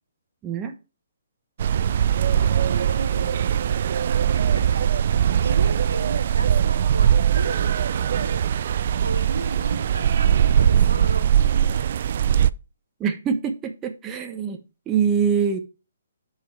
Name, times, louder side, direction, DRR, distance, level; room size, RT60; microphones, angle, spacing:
voice 1, 0.4-0.7 13.0-14.6 14.9-15.6, right 7 dB, 20° right, 4 dB, 1.1 m, -24 dB
sound 1, 1.6-12.5, right 9 dB, 50° right, 0.4 m, -20 dB
voice 2, 2.2-3.7 4.3-5.0 5.3-8.5 9.0-12.0, right 2 dB, 85° right, 6 dB, 1.8 m, -36 dB
7.1 x 5.1 x 4.7 m, 0.30 s
figure-of-eight pair, 135°, 0 cm